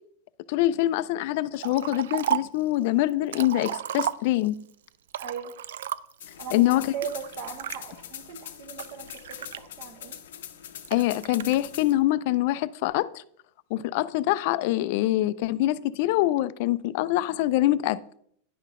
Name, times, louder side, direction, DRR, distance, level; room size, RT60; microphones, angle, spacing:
voice 1, 0.5-4.6 6.5-6.9 10.9-13.2 13.7-18.0, left 15 dB, 45° left, 0.3 m, -24 dB
Liquid, 1.6-2.6 3.1-4.6 5.1-6.3 7.0-7.8 8.4-10.1 10.8-11.6, right 11 dB, 85° right, 0.3 m, -32 dB
voice 2, 5.2-5.6 6.4-10.2, right 7 dB, 50° right, 0.7 m, -38 dB
sound 1, 6.2-11.9, left 10 dB, 90° left, 0.7 m, -43 dB
10.0 x 5.7 x 3.6 m
supercardioid pair, 170°, 0 cm